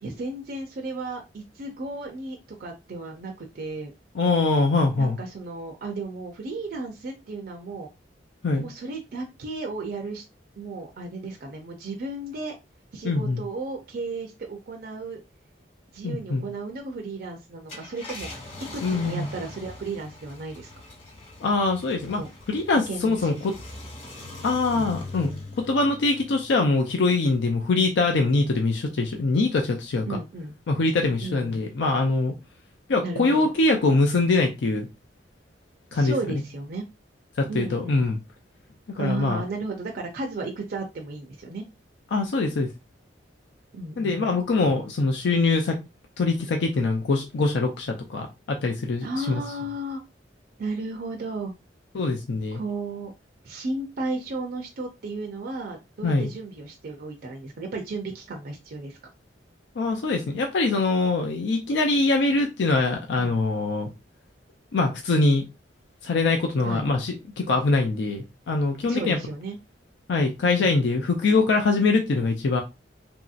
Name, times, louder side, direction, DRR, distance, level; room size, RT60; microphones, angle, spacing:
voice 1, 0.0-3.9 5.0-7.9 8.6-10.2 10.6-12.5 12.9-15.2 15.9-20.7 22.2-22.3 22.7-23.4 24.7-25.0 30.1-30.6 31.2-31.5 33.0-33.4 35.9-36.8 37.5-38.0 39.0-41.6 43.7-44.3 49.0-50.0 50.6-51.5 52.5-53.1 53.4-59.0 66.6-66.9 68.8-69.6 70.5-70.7 72.5-72.6, right 2 dB, 55° right, 0.5 m, -34 dB
voice 2, 4.1-5.2 8.4-8.7 13.0-13.4 16.0-16.5 18.8-19.3 21.4-22.2 22.5-23.5 24.4-30.2 30.7-32.3 32.9-34.9 35.9-36.4 37.4-38.2 38.9-39.4 42.1-42.7 44.0-45.8 46.2-49.4 51.9-52.6 56.0-56.3 59.8-63.9 64.7-65.5 66.0-69.2 70.1-72.6, left 3 dB, 80° left, 0.4 m, -23 dB
Car, 17.5-28.4 28.9-29.0 31.0-31.2, left 2 dB, 35° left, 1.1 m, -42 dB
2.9 x 2.7 x 2.4 m
head